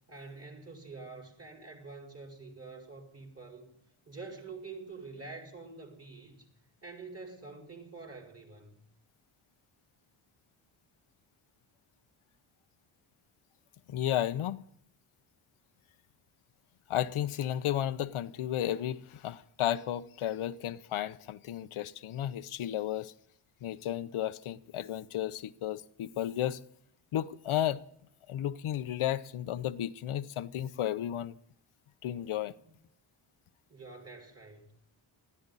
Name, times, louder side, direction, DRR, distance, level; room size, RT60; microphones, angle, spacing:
voice 1, 0.1-3.7 4.0-6.5 6.8-8.8 32.6-32.8 33.7-34.7, right 3 dB, 30° right, 5.1 m, -47 dB
voice 2, 13.9-14.6 16.9-23.1 23.6-26.6 27.1-27.8 28.3-31.4 32.0-32.5, left 11 dB, 80° left, 0.8 m, -33 dB
20.5 x 14.0 x 4.1 m
wide cardioid pair, 115°, 49 cm